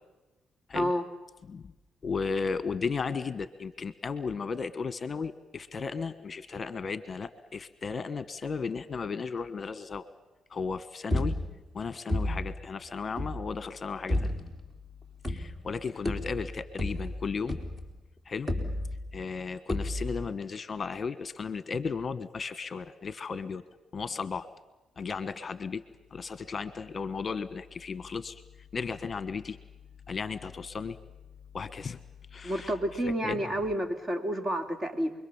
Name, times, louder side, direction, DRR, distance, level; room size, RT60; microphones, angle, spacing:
voice 1, 2.0-10.1 10.5-11.3 11.7-14.3 15.3-17.6 18.2-18.5 19.1-23.6 23.9-24.5 25.0-25.8 26.1-28.4 28.7-29.6 30.1-31.0 31.5-32.0 32.3-33.5, left 5 dB, 40° left, 13 dB, 1.3 m, -35 dB
sound 1, 11.1-11.7 12.1-12.6 13.2-13.5 14.1-14.6 15.2-15.7 16.1-18.0 18.5-19.2 19.7-20.3, left 1 dB, 15° right, 3.9 m, -31 dB
voice 2, 32.4-35.1, equal, 30° right, 7 dB, 3.3 m, -30 dB
28.5 x 22.5 x 7.2 m, 1.1 s
cardioid pair, 90°, 0 cm